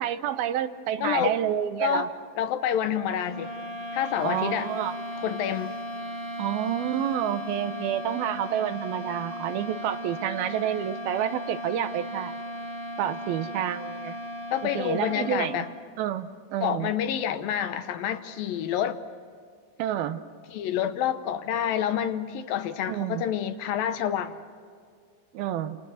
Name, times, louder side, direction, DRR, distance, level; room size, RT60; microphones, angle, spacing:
voice 1, 0.0-2.1 4.2-5.0 6.4-12.3 13.0-14.2 14.6-15.7 16.0-16.9 19.8-20.2 22.9-23.3 25.3-25.8, right 10 dB, 80° right, 10 dB, 2.8 m, -29 dB
voice 2, 1.0-1.3 1.8-2.1 2.4-3.5 3.9-4.7 5.2-5.8 14.5-15.7 16.6-19.0 20.5-24.4, left 9 dB, 75° left, 10 dB, 2.6 m, -28 dB
sound 1, 3.2-16.0, equal, 20° right, 1.4 m, -36 dB
30.0 x 28.0 x 6.5 m, 2.1 s
omnidirectional pair, 4.4 m